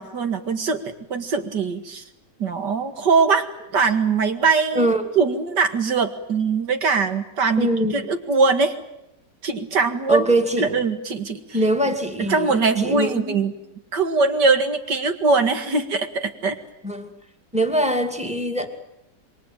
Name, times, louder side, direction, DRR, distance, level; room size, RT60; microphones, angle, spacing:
voice 1, 0.0-2.0 2.4-3.5 3.7-8.7 9.4-11.6 12.3-13.5 13.9-16.6, right 4 dB, 75° right, 7 dB, 2.6 m, -22 dB
voice 2, 4.7-5.1 7.6-8.1 10.1-10.7 11.5-13.4 16.8-17.1 17.5-18.7, right 1 dB, 5° right, 4 dB, 2.5 m, -23 dB
26.5 x 23.0 x 9.2 m, 0.87 s
omnidirectional pair, 1.9 m